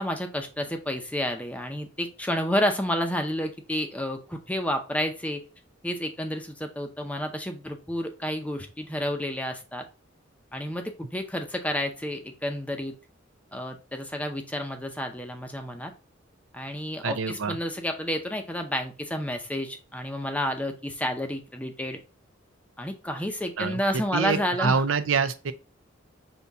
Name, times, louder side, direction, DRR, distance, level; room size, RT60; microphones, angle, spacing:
voice 1, 0.0-5.4 5.8-9.8 10.5-12.9 13.5-15.9 16.5-22.0 22.8-24.8, equal, 5° left, 0.6 m, -30 dB
voice 2, 17.0-17.6 23.6-25.5, right 5 dB, 80° right, 0.6 m, -26 dB
5.5 x 2.8 x 3.4 m
head